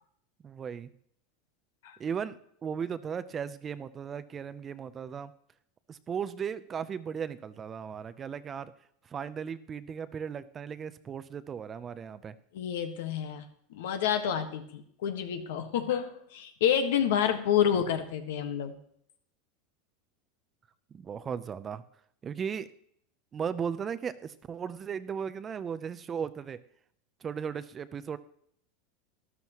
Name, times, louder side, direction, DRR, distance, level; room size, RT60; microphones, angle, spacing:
voice 1, 0.4-0.9 2.0-5.3 5.9-8.7 9.0-12.3 20.9-21.8 22.2-22.7 23.3-26.6 27.2-28.2, right 7 dB, 25° right, 14 dB, 0.6 m, -36 dB
voice 2, 12.5-18.8, left 9 dB, 80° left, 8 dB, 1.5 m, -29 dB
13.0 x 12.5 x 3.0 m, 0.67 s
supercardioid pair, 135°, 0 cm